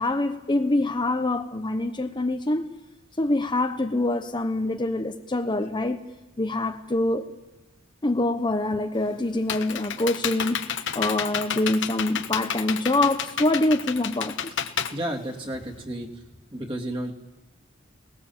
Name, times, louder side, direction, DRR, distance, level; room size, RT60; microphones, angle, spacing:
voice 1, 0.0-2.7 3.2-6.0 6.4-7.3 8.0-10.6 10.9-14.5, left 2 dB, 25° left, 6 dB, 0.9 m, -25 dB
Computer keyboard, 8.9-15.8, left 8 dB, 65° left, 1.2 m, -31 dB
voice 2, 14.9-16.1 16.5-17.1, right 1 dB, 25° right, -1 dB, 2.9 m, -31 dB
29.5 x 19.5 x 7.3 m, 1.1 s
head